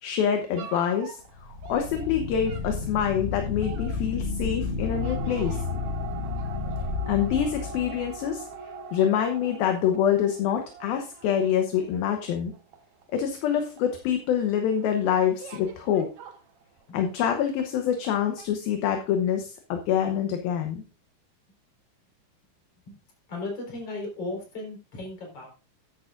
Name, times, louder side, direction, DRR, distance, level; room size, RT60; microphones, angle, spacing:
voice 1, 0.0-5.6 7.1-8.5 8.9-12.5 13.1-16.1 16.9-20.8, left 9 dB, 75° left, 5 dB, 2.7 m, -26 dB
sound 1, 0.6-17.2 17.6-18.1 18.4-18.5, right 6 dB, 75° right, 1.3 m, -44 dB
sound 2, 1.3-8.4, left 4 dB, 25° right, 3.1 m, -32 dB
voice 2, 23.3-25.5, left 2 dB, 40° left, 1 dB, 5.3 m, -35 dB
13.0 x 10.5 x 2.5 m, 0.33 s
omnidirectional pair, 4.5 m